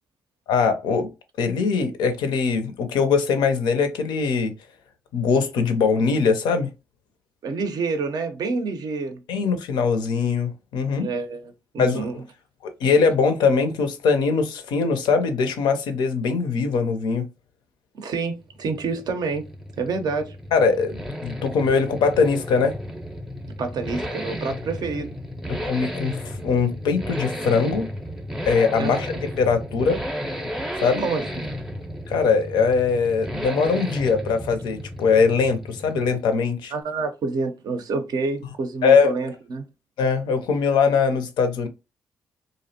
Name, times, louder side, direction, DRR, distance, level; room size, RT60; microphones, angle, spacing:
voice 1, 0.5-1.1 1.4-4.5 5.1-6.7 9.3-11.1 11.8-12.1 12.6-17.3 20.5-22.8 25.5-27.9 28.5-30.0 30.8-31.0 32.1-36.7 38.8-39.1 40.0-41.7, left 5 dB, 70° left, 0.4 m, -21 dB
voice 2, 7.4-9.2 11.0-12.1 17.9-19.5 19.8-20.4 23.6-25.2 28.8-29.0 31.0-31.5 36.7-39.6, right 4 dB, 55° right, 0.5 m, -28 dB
sound 1, 18.3-36.4, equal, 5° right, 0.5 m, -33 dB
2.5 x 2.0 x 2.6 m
hypercardioid pair, 45°, 8 cm